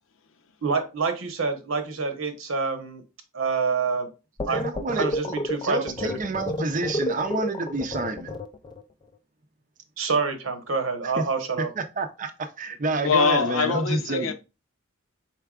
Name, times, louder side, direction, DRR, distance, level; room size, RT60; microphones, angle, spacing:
voice 1, 0.6-3.0 3.3-4.1 4.5-4.6 5.0-6.2 10.0-11.7, right 4 dB, 75° right, 1.1 m, -27 dB
sound 1, 4.4-8.8, left 1 dB, 20° left, 0.3 m, -30 dB
voice 2, 4.5-5.4 5.6-8.4 11.0-11.2 11.8-14.3, right 2 dB, 40° right, 0.6 m, -29 dB
voice 3, 13.0-14.3, left 5 dB, 70° left, 0.6 m, -23 dB
4.6 x 4.4 x 2.4 m
head